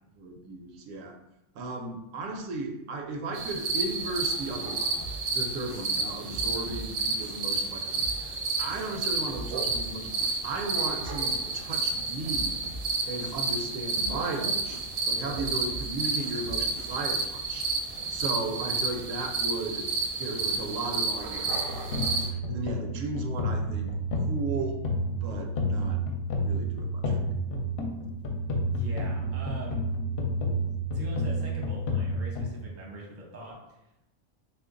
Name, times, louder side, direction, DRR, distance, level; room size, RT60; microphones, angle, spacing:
voice 1, 0.1-1.2 1.5-4.9 5.3-10.1 10.4-12.6 13.0-17.7 18.1-19.9 20.2-21.9 22.1-23.9 24.2-24.8 25.2-26.0 26.4-27.3, right 2 dB, 85° right, 4 dB, 0.9 m, -35 dB
sound 1, 3.3-22.3, right 3 dB, 60° right, 0.6 m, -31 dB
sound 2, 5.0-5.4 5.7-6.9 7.2-7.6 8.0-8.4 8.7-9.9 10.2-10.6 11.0-11.4 11.7-12.9 13.2-13.6 14.0-14.4 14.7-15.9 16.2-17.0, right 1 dB, 45° left, 0.4 m, -42 dB
sound 3, 21.5-32.5, equal, 60° left, 0.8 m, -30 dB
voice 2, 28.7-29.8 30.9-33.6, right 1 dB, 20° right, -2 dB, 0.5 m, -41 dB
3.0 x 2.5 x 3.7 m, 0.87 s
omnidirectional pair, 1.3 m